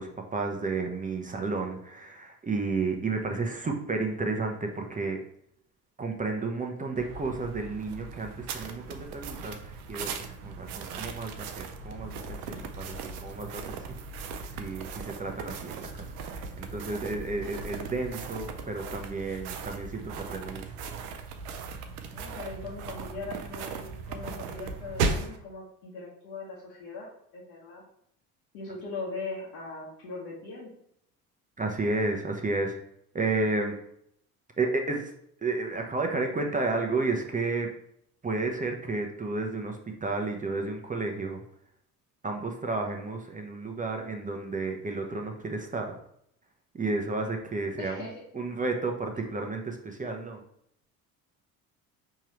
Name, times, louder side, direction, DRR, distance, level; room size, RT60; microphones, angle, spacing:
voice 1, 0.0-5.2 6.0-20.7 31.6-32.8 33.1-33.8 34.6-35.1 35.4-37.7 38.2-41.4 42.2-46.0 46.7-48.1 48.3-50.4, right 3 dB, 20° right, 3 dB, 0.7 m, -32 dB
sound 1, 6.9-25.4, right 4 dB, 80° right, 0.6 m, -37 dB
voice 2, 22.0-27.9 28.5-30.7 47.8-48.2, left 3 dB, 75° left, -8 dB, 1.3 m, -40 dB
4.6 x 3.0 x 3.0 m, 0.72 s
hypercardioid pair, 65°, 45 cm